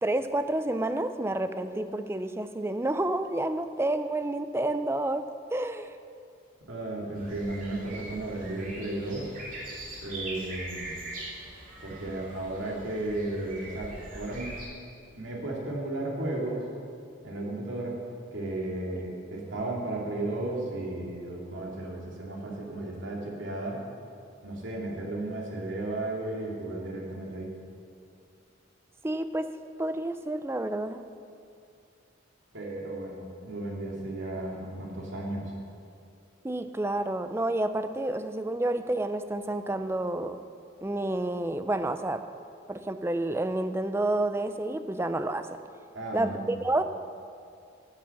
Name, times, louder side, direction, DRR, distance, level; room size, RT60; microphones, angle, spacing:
voice 1, 0.0-5.2 5.5-5.9 29.0-29.5 29.8-31.0 36.4-40.4 40.8-42.2 42.7-45.6 46.1-46.8, right 1 dB, 10° right, 9 dB, 0.4 m, -29 dB
voice 2, 6.7-9.3 10.0-10.9 11.8-14.5 15.2-16.6 17.2-18.0 18.3-23.8 24.4-27.5 32.5-35.5 45.9-46.6, right 2 dB, 70° right, -2 dB, 2.6 m, -34 dB
sound 1, 7.1-14.7, right 2 dB, 45° right, 2.9 m, -42 dB
11.5 x 7.6 x 7.0 m, 2.4 s
head